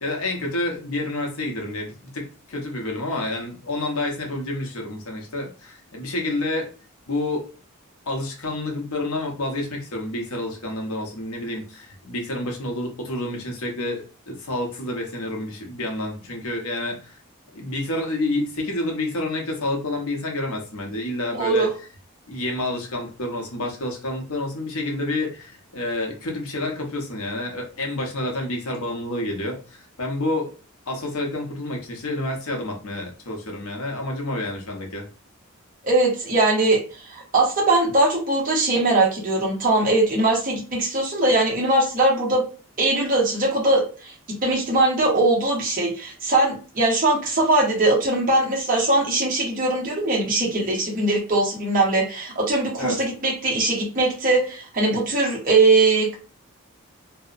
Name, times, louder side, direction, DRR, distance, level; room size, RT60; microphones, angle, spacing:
voice 1, 0.0-6.7 7.1-7.5 8.1-17.2 17.5-21.7 22.3-30.5 30.9-35.1 52.8-53.0, left 2 dB, 80° left, 1 dB, 0.7 m, -29 dB
voice 2, 21.3-21.7 35.8-42.4 42.8-44.1 44.4-56.1, right 2 dB, 40° right, -2 dB, 0.8 m, -21 dB
2.7 x 2.0 x 2.4 m, 0.36 s
head